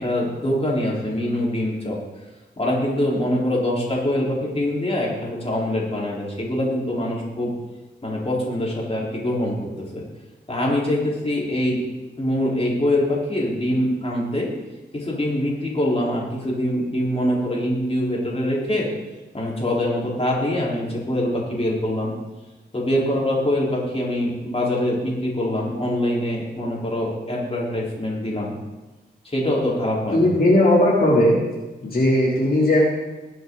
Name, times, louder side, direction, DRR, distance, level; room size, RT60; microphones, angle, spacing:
voice 1, 0.0-2.0 2.6-7.5 8.0-10.0 10.5-11.8 12.2-14.5 14.9-18.9 19.3-22.1 22.7-28.5 29.2-30.3, left 1 dB, 35° left, -4 dB, 3.9 m, -24 dB
voice 2, 30.1-31.4 31.8-32.8, left 1 dB, 55° left, -5 dB, 3.0 m, -17 dB
21.0 x 7.8 x 3.9 m, 1.1 s
wide cardioid pair, 85°, 18 cm